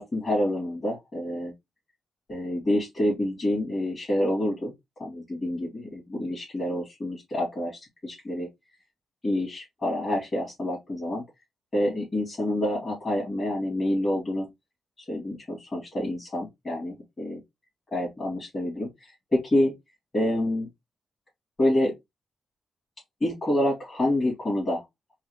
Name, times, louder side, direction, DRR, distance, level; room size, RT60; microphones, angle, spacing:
voice 1, 0.0-1.5 2.3-4.7 5.0-8.5 9.2-11.2 11.7-14.5 15.1-17.4 17.9-19.7 20.1-20.7 21.6-21.9 23.2-24.8, left 1 dB, 20° left, 2.6 m, -27 dB
4.6 x 2.4 x 3.1 m
wide cardioid pair, 175°, 0 cm